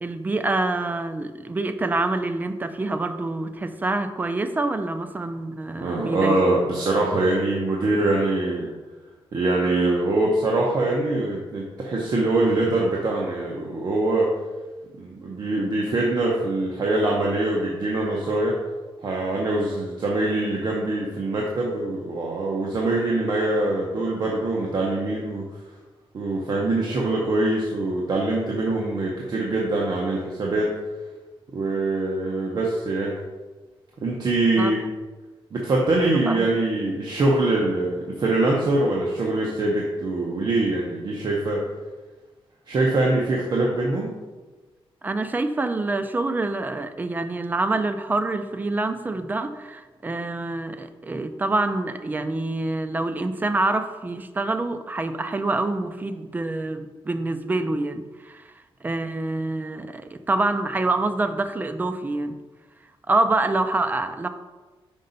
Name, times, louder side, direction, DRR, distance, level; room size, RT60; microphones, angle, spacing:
voice 1, 0.0-6.4 7.0-7.1 34.6-34.7 36.0-36.5 45.0-62.3 63.1-64.3, right 2 dB, 20° right, 9 dB, 0.4 m, -26 dB
voice 2, 5.8-8.7 9.3-14.3 15.0-18.5 19.0-25.4 26.1-30.7 31.5-33.2 34.0-34.9 35.5-41.6 42.7-44.2, right 2 dB, 50° right, -3 dB, 0.8 m, -23 dB
5.4 x 5.2 x 3.9 m, 1.3 s
wide cardioid pair, 155°, 9 cm